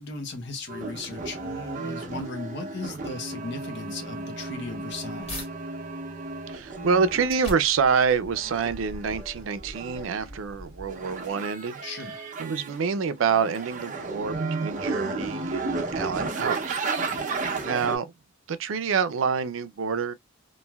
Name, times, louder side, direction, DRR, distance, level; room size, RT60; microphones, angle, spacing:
voice 1, 0.0-5.4 11.8-12.2 17.1-17.3, left 3 dB, 60° left, 0.7 m, -37 dB
sound 1, 0.7-7.3 8.3-10.3 10.9-12.8 13.2-18.0, right 3 dB, 40° right, 0.7 m, -33 dB
sound 2, 5.3-5.5 6.0-11.3, equal, 35° left, 1.5 m, -43 dB
voice 2, 6.5-11.8 12.4-16.8 17.6-18.1 18.5-20.1, right 6 dB, 85° right, 0.4 m, -27 dB
3.0 x 2.5 x 2.2 m
head